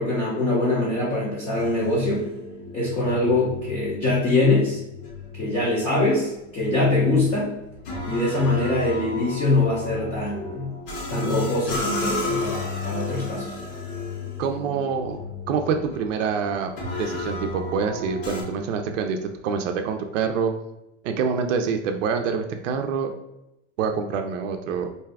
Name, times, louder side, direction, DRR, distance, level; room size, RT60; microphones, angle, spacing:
voice 1, 0.0-2.2 2.7-4.8 5.3-7.5 8.0-10.7 11.1-13.6, left 2 dB, 15° left, -7 dB, 0.5 m, -23 dB
sound 1, 1.5-18.4, left 2 dB, 60° left, 1.0 m, -33 dB
voice 2, 14.4-16.7 17.0-20.5 21.0-23.1 23.8-24.9, right 6 dB, 85° right, 5 dB, 0.5 m, -26 dB
2.6 x 2.3 x 3.3 m, 0.89 s
supercardioid pair, 155°, 36 cm